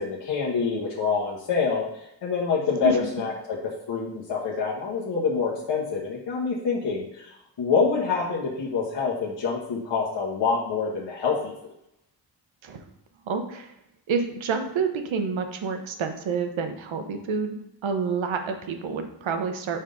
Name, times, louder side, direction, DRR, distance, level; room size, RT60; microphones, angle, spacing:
voice 1, 0.0-7.3 7.6-11.5, left 5 dB, 65° left, -4 dB, 1.3 m, -26 dB
voice 2, 13.3-13.7 14.1-19.8, right 5 dB, 80° right, 6 dB, 0.9 m, -28 dB
5.4 x 3.6 x 5.3 m, 0.81 s
wide cardioid pair, 120°, 46 cm